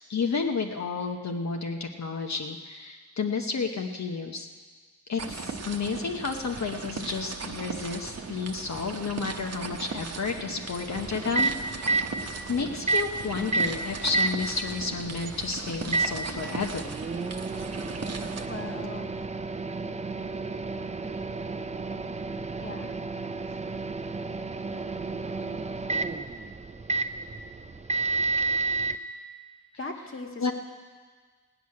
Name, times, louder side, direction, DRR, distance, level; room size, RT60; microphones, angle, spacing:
voice 1, 0.1-4.5 5.1-11.9 12.5-16.9 30.4-30.5, left 4 dB, 60° left, 3 dB, 0.9 m, -31 dB
sound 1, 5.2-18.5, right 4 dB, 55° right, 0.9 m, -38 dB
Microwave oven, 10.9-29.0, right 3 dB, 25° right, 0.5 m, -31 dB
voice 2, 18.5-19.1 22.6-22.9 29.8-30.5, left 3 dB, 45° left, 2 dB, 1.6 m, -39 dB
17.5 x 6.2 x 9.6 m, 1.5 s
wide cardioid pair, 120°, 30 cm